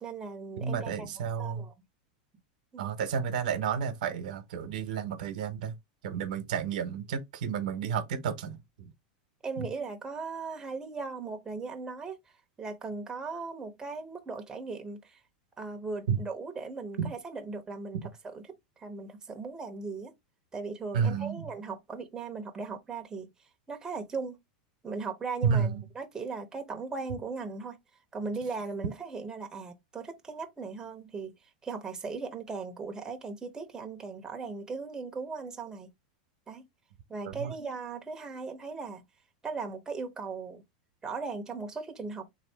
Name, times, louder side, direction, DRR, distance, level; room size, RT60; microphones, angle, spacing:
voice 1, 0.0-1.7 2.7-2.9 9.4-12.2 12.6-15.2 15.6-20.1 20.5-23.3 23.7-24.4 24.8-27.8 28.1-31.3 31.6-35.9 36.5-36.7 37.1-39.0 39.4-40.6 41.0-42.3, right 4 dB, 15° right, 0.9 m, -38 dB
voice 2, 0.6-1.7 2.8-5.7 6.0-8.9 9.6-9.7 16.1-16.2 17.0-17.1 17.9-18.0 20.9-21.4 25.4-25.8 37.2-37.5, right 7 dB, 75° right, 0.9 m, -31 dB
3.6 x 2.7 x 3.4 m
supercardioid pair, 135°, 4 cm